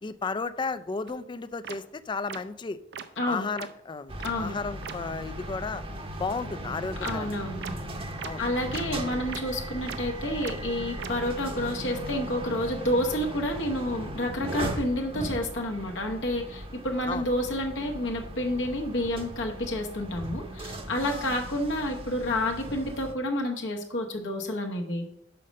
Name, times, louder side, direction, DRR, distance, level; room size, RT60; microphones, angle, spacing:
voice 1, 0.0-2.8 3.2-5.8 6.2-7.4 8.2-8.4 17.1-17.3 21.0-21.3, left 4 dB, 25° left, 13 dB, 0.3 m, -33 dB
sound 1, 1.1-1.2 1.6-1.8 2.3-2.4 2.9-3.0 3.6-3.7 4.2-4.3 4.8-4.9 7.0-7.1 7.6-7.7 8.2-8.3 8.7-8.8 9.3-9.4 9.9-10.0 10.4-10.5 11.0-11.1, right 7 dB, 65° right, 0.6 m, -37 dB
sound 2, 4.1-23.1, right 1 dB, 30° right, 0.8 m, -38 dB
voice 2, 4.2-4.5 7.0-7.7 8.4-25.1, left 1 dB, 70° left, 1 dB, 1.0 m, -29 dB
5.7 x 5.1 x 6.4 m, 0.78 s
head